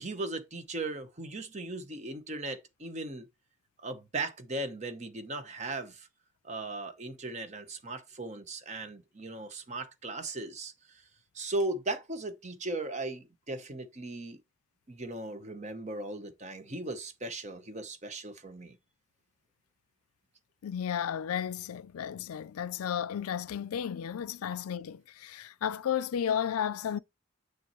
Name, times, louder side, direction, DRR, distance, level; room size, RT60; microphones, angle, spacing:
voice 1, 0.0-3.3 3.8-6.1 6.4-11.0 11.3-14.4 14.9-18.8, right 2 dB, 30° right, 0.9 m, -37 dB
voice 2, 20.6-27.0, left 8 dB, 90° left, 0.4 m, -33 dB
6.8 x 6.5 x 3.0 m
head